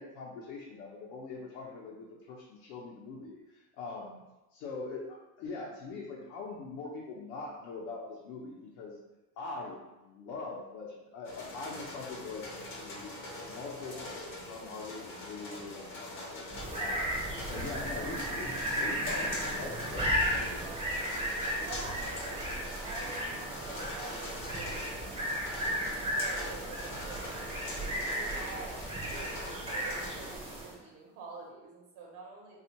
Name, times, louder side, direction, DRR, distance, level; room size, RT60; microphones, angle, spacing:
voice 1, 0.0-4.2 4.5-9.0 9.4-13.1 13.4-14.1 14.4-16.5 16.8-21.3, left 3 dB, 70° left, -3 dB, 0.7 m, -43 dB
sound 1, 11.2-30.4, left 1 dB, 35° left, 0.6 m, -43 dB
voice 2, 11.3-11.7 13.7-14.0 20.5-20.9 21.5-22.5 22.8-27.5 28.1-28.7 29.1-32.6, right 3 dB, 70° right, -1 dB, 0.8 m, -48 dB
sound 2, 16.5-30.8, equal, 15° right, 0.5 m, -35 dB
3.4 x 2.4 x 2.9 m, 1.0 s
cardioid pair, 160°, 38 cm